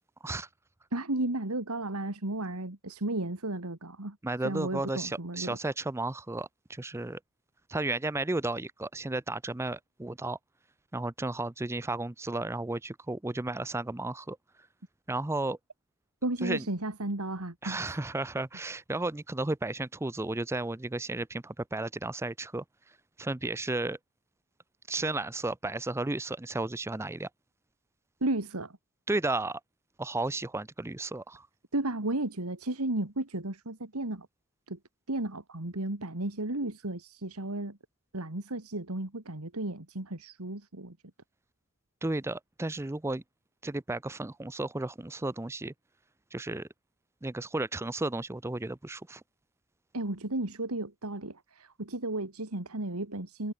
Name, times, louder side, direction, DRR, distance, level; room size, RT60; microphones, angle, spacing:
voice 1, 0.9-4.2 4.4-5.6 16.2-18.0 28.2-28.7 31.7-34.3 34.7-34.8 35.1-37.8 38.1-41.0 49.9-53.5, right 2 dB, 85° right, 2.6 m, -34 dB
voice 2, 4.2-7.2 7.7-10.4 10.9-14.4 15.1-15.6 16.4-16.7 17.6-22.6 23.2-24.0 24.9-27.3 29.1-29.6 30.0-31.5 42.0-43.2 43.6-45.7 46.3-46.7 47.2-49.2, right 2 dB, 10° right, 0.5 m, -33 dB
head